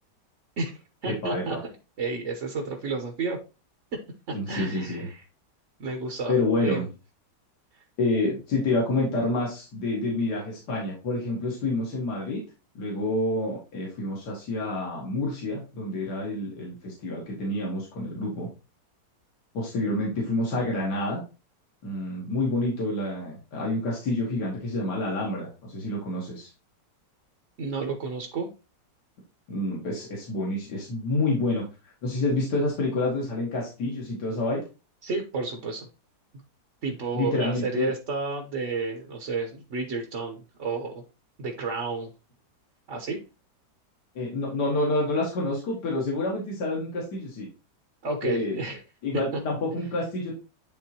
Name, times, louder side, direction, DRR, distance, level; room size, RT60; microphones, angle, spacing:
voice 1, 0.6-1.6 2.0-3.4 4.3-5.2 5.8-6.4 6.6-6.9 27.6-28.5 35.0-35.9 36.8-41.0 41.4-42.1 42.9-43.2 48.0-48.8, right 3 dB, 50° right, 3 dB, 1.2 m, -31 dB
voice 2, 1.1-1.6 4.3-5.1 6.3-6.9 8.0-12.4 12.8-18.5 19.5-21.2 21.8-26.5 29.5-31.6 32.0-34.6 37.1-37.9 44.2-47.5 48.2-48.6 49.0-50.4, left 2 dB, 70° left, -3 dB, 2.4 m, -28 dB
10.5 x 3.8 x 2.9 m, 0.30 s
omnidirectional pair, 1.9 m